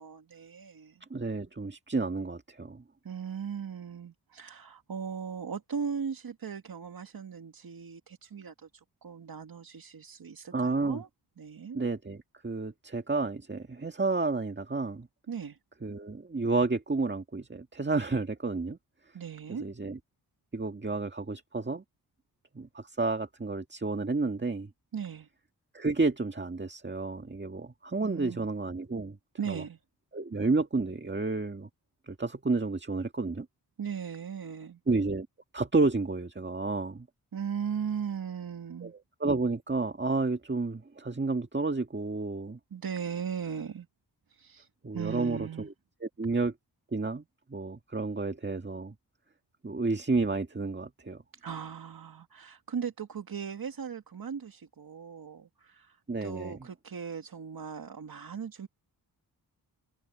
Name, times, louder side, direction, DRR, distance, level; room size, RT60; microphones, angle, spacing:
voice 1, 0.0-1.0 3.0-11.1 11.4-11.8 15.3-15.6 19.1-19.7 24.9-25.3 28.0-28.5 29.4-29.8 33.8-34.8 37.3-38.9 42.7-43.9 44.3-44.7 44.9-45.7 51.3-58.7, right 7 dB, 60° right, 2.0 m, -38 dB
voice 2, 1.1-2.8 10.5-11.0 11.7-15.1 15.8-18.8 19.6-20.0 20.5-21.8 22.6-24.7 25.7-29.2 29.5-29.6 30.1-31.7 32.1-33.5 34.9-35.3 35.5-37.1 38.8-38.9 39.2-42.6 44.8-45.7 46.0-46.5 46.9-47.2 47.5-48.9 49.6-51.2 56.1-56.6, right 3 dB, 25° right, 1.8 m, -31 dB
cardioid pair, 60°, 40 cm